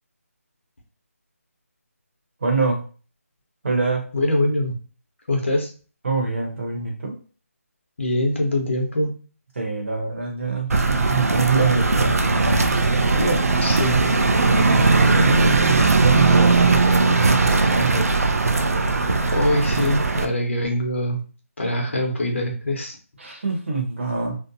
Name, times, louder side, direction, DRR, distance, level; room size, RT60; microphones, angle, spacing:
voice 1, 2.4-2.8 3.6-4.1 6.0-7.1 9.6-12.7 13.1-13.4 14.4-18.1 23.2-24.4, right 4 dB, 50° right, 0 dB, 0.9 m, -25 dB
voice 2, 4.1-4.8 5.3-5.7 8.0-9.1 13.6-14.0 19.3-21.2 21.6-23.0, left 1 dB, 55° left, 1 dB, 0.9 m, -23 dB
sound 1, 10.7-20.3, right 3 dB, 80° right, 0.5 m, -19 dB
2.7 x 2.0 x 2.6 m, 0.37 s
figure-of-eight pair, 170°, 8 cm